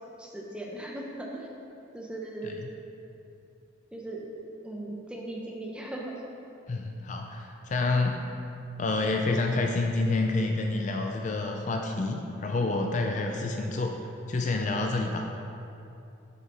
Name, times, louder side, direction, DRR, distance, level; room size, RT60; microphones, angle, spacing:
voice 1, 0.2-1.5 1.9-2.6 3.9-4.3 4.6-6.1, right 1 dB, 5° right, -2 dB, 0.7 m, -38 dB
voice 2, 6.7-8.3 8.8-13.9 14.3-15.3, left 3 dB, 40° left, 2 dB, 0.4 m, -28 dB
8.0 x 4.8 x 4.3 m, 2.7 s
head